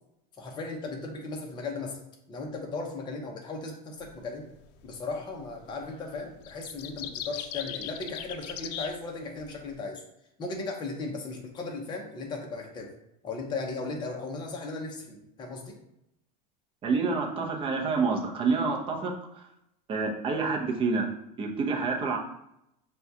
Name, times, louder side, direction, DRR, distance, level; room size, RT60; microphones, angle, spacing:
voice 1, 0.4-2.0 2.3-4.4 4.8-10.0 10.4-12.9 13.2-15.7, left 3 dB, 20° left, 1 dB, 0.7 m, -36 dB
sound 1, 4.0-4.2 5.4-5.8 6.1-9.7, left 10 dB, 75° left, 0.4 m, -38 dB
voice 2, 16.8-19.1 19.9-21.1 21.4-22.2, right 4 dB, 25° right, 0 dB, 0.6 m, -27 dB
5.9 x 2.3 x 2.7 m, 0.80 s
supercardioid pair, 145°, 21 cm